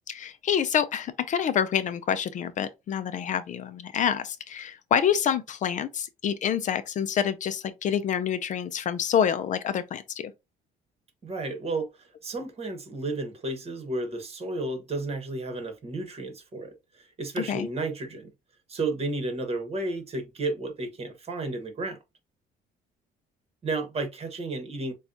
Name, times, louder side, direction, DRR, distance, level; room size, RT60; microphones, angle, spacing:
voice 1, 0.1-10.3 17.4-17.7, left 8 dB, 50° left, 0.5 m, -27 dB
voice 2, 11.2-11.9 12.2-16.7 17.2-18.3 18.7-22.0 23.6-24.9, right 2 dB, 35° right, 1.3 m, -32 dB
6.7 x 2.4 x 2.7 m
cardioid pair, 110°, 17 cm